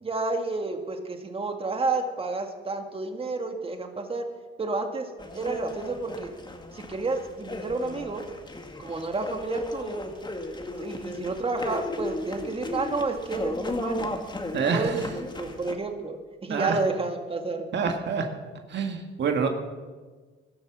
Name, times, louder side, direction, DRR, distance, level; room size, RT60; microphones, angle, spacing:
voice 1, 0.0-4.2 4.6-5.1 5.3-6.3 6.7-8.2 8.8-10.0 10.6-14.1 14.6-17.7, right 3 dB, 30° right, 5 dB, 1.9 m, -30 dB
sound 1, 5.2-15.7, left 2 dB, 20° left, 2.1 m, -35 dB
voice 2, 14.5-15.0 16.5-16.8 17.7-18.3 18.7-19.5, right 5 dB, 60° right, 4 dB, 1.8 m, -26 dB
17.5 x 12.5 x 6.1 m, 1.4 s
cardioid pair, 90°, 20 cm